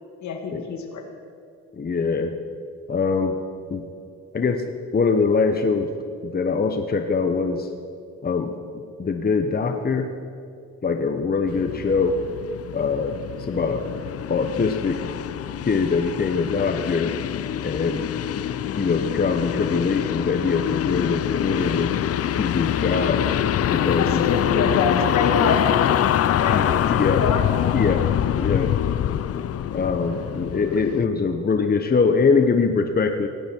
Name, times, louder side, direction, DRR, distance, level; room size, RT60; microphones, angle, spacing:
voice 1, 0.2-1.0 24.0-25.9 26.4-27.4, left 5 dB, 70° left, 4 dB, 2.3 m, -26 dB
voice 2, 1.8-2.3 2.9-3.4 3.7-3.8 4.3-5.9 6.2-7.7 8.2-10.1 10.8-12.2 12.7-13.8 14.3-15.0 15.6-17.1 17.6-18.4 18.7-21.9 22.4-23.2 23.7-24.2 26.5-26.7 27.0-27.3 27.7-28.1 28.3-28.7 29.7-33.3, left 4 dB, 30° left, 6 dB, 1.1 m, -23 dB
sound 1, 11.5-31.1, left 10 dB, 50° left, 0.6 m, -25 dB
18.0 x 17.5 x 4.7 m, 2.4 s
cardioid pair, 90°, 30 cm